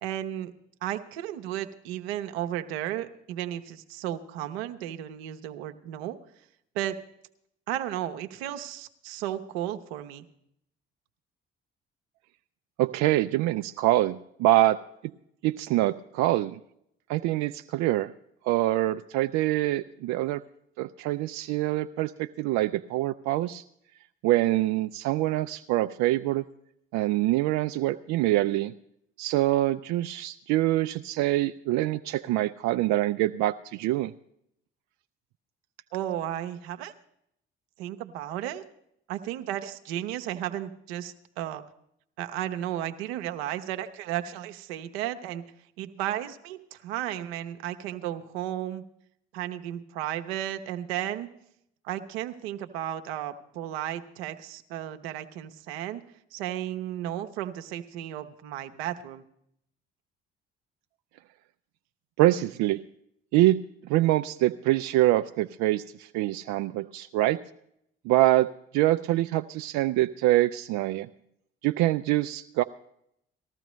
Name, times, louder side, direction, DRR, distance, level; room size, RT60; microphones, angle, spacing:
voice 1, 0.0-0.5 0.8-6.2 6.7-6.9 7.7-10.3 35.9-36.9 37.8-38.6 39.1-41.6 42.2-45.4 45.8-48.8 49.3-51.3 51.8-56.0 56.3-59.2, right 12 dB, 85° right, 8 dB, 0.9 m, -34 dB
voice 2, 12.8-14.8 15.4-16.6 17.1-18.1 18.4-20.4 20.8-23.6 24.2-26.4 26.9-28.7 29.2-34.1 62.2-62.8 63.3-67.4 68.0-71.1 71.6-72.6, right 16 dB, 65° right, 9 dB, 0.5 m, -25 dB
19.0 x 14.0 x 3.1 m, 0.74 s
hypercardioid pair, 55°, 30 cm